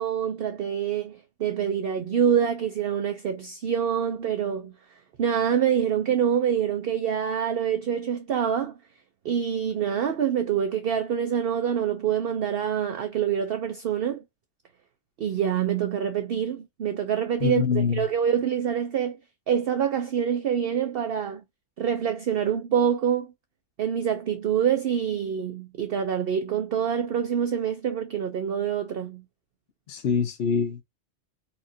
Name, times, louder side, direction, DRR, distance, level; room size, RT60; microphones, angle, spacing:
voice 1, 0.0-4.7 5.2-8.7 9.2-14.2 15.2-19.2 19.5-21.4 21.8-23.3 23.8-29.2, right 8 dB, 60° right, 0.7 m, -26 dB
voice 2, 17.4-18.0 29.9-30.8, left 6 dB, 60° left, 0.9 m, -25 dB
4.2 x 2.4 x 2.6 m
omnidirectional pair, 1.3 m